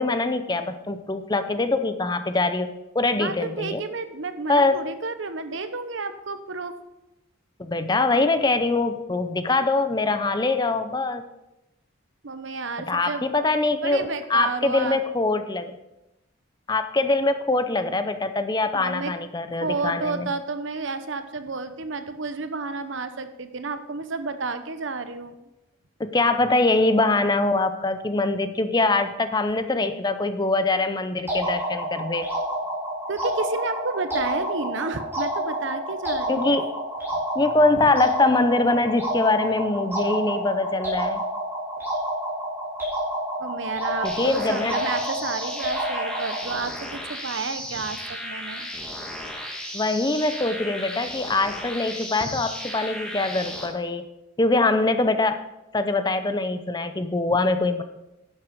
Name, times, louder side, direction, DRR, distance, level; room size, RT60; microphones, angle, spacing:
voice 1, 0.0-2.7 2.9-3.8 4.5-4.8 7.6-11.2 12.9-15.8 16.7-20.3 26.0-32.3 36.3-36.7 37.4-41.3 44.0-44.7 49.7-54.0 54.4-55.4 55.7-57.8, left 2 dB, 20° left, 9 dB, 0.5 m, -23 dB
voice 2, 3.2-6.8 12.2-13.2 13.8-15.0 18.7-19.1 19.6-25.3 33.1-36.5 37.8-37.9 43.4-48.7 52.2-52.4, right 3 dB, 65° right, 10 dB, 0.8 m, -31 dB
sound 1, 31.3-46.7, equal, 10° right, 3.8 m, -29 dB
sound 2, 44.0-53.7, equal, 5° left, 1.4 m, -35 dB
11.0 x 7.5 x 5.1 m, 0.95 s
head